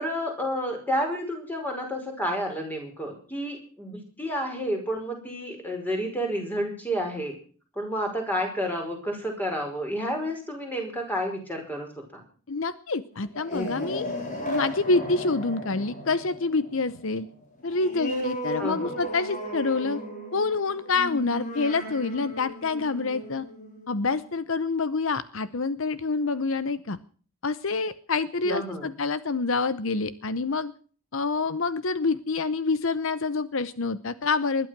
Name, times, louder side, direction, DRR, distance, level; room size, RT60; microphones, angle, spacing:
voice 1, 0.0-7.3 7.8-12.2 18.6-18.9 28.4-28.9, equal, 10° left, 2 dB, 5.4 m, -30 dB
voice 2, 12.5-14.1 14.5-17.3 17.6-20.0 20.3-23.5 23.9-27.0 27.4-30.7 31.1-34.7, left 4 dB, 65° left, 15 dB, 0.8 m, -27 dB
sound 1, 13.2-24.4, equal, 35° left, 4.2 m, -35 dB
20.5 x 11.5 x 6.0 m, 0.42 s
head